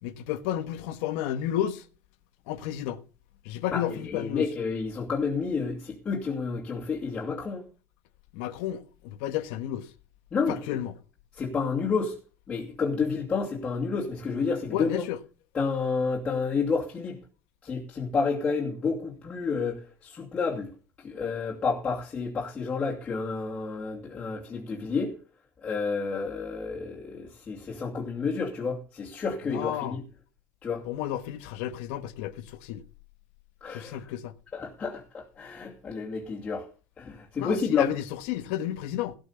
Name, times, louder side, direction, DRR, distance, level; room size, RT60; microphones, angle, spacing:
voice 1, 0.0-1.9 2.5-3.0 3.4-4.5 8.3-9.9 10.5-10.9 14.7-15.2 29.5-30.0 30.8-32.8 33.7-34.3 37.4-39.2, left 11 dB, 85° left, 1.3 m, -32 dB
voice 2, 3.7-7.6 10.3-10.6 11.4-12.2 12.5-15.0 15.5-17.2 17.6-20.7 21.0-25.2 25.6-30.0 30.6-30.9 33.6-34.0 34.5-36.7 37.0-37.9, left 4 dB, 20° left, 2.6 m, -30 dB
17.0 x 6.2 x 7.1 m
cardioid pair, 175°, 7 cm